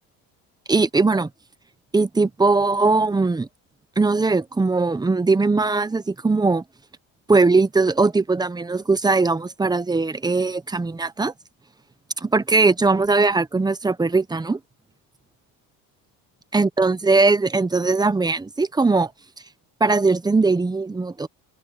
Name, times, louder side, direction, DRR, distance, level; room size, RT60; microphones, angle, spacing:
voice 1, 0.7-1.3 1.9-3.5 4.0-6.6 7.3-11.3 12.2-14.6 16.5-19.1 19.8-21.3, right 3 dB, 10° right, 1.0 m, -20 dB
open air
cardioid pair, 130°, 37 cm